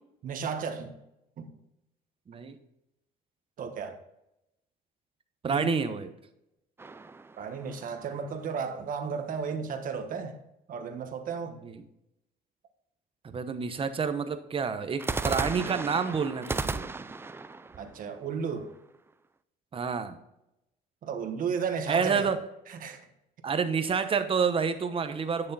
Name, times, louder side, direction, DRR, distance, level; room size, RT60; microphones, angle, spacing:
voice 1, 0.2-1.0 1.4-1.5 3.6-4.0 5.5-5.7 7.4-10.4 10.7-11.6 17.8-18.7 21.0-22.3 22.7-23.0, right 6 dB, 55° right, 1.4 m, -34 dB
voice 2, 5.4-6.1 11.6-11.8 13.2-16.9 19.7-20.2 21.9-22.4 23.4-25.5, right 5 dB, 30° right, 1.0 m, -29 dB
sound 1, 6.8-8.2 15.0-19.0, right 3 dB, 15° right, 0.4 m, -35 dB
10.0 x 6.5 x 4.1 m
cardioid pair, 110°, 17 cm